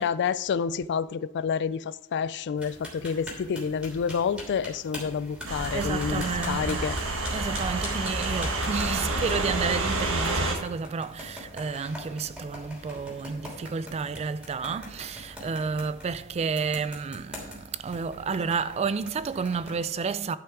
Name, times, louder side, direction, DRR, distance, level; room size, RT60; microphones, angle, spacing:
voice 1, 0.0-7.0, left 6 dB, 55° left, 0.3 m, -29 dB
sound 1, 2.6-19.7, left 1 dB, 5° right, 3.0 m, -43 dB
sound 2, 5.5-10.6, right 2 dB, 60° right, 1.4 m, -29 dB
voice 2, 5.7-6.8 7.3-20.4, right 5 dB, 30° right, 0.3 m, -31 dB
11.5 x 5.8 x 4.8 m
head